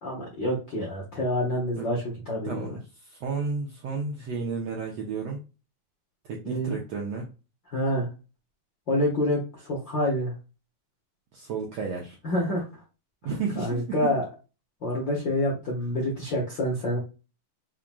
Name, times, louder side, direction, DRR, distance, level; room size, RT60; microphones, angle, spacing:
voice 1, 0.0-2.7 6.4-6.8 7.7-8.1 8.9-10.3 12.2-12.6 13.5-14.2 14.8-17.0, left 1 dB, 55° left, -4 dB, 1.3 m, -27 dB
voice 2, 2.4-5.4 6.2-7.3 11.3-12.2 13.2-13.8, right 4 dB, 75° right, -1 dB, 1.6 m, -32 dB
5.7 x 3.7 x 2.3 m, 0.30 s
omnidirectional pair, 4.0 m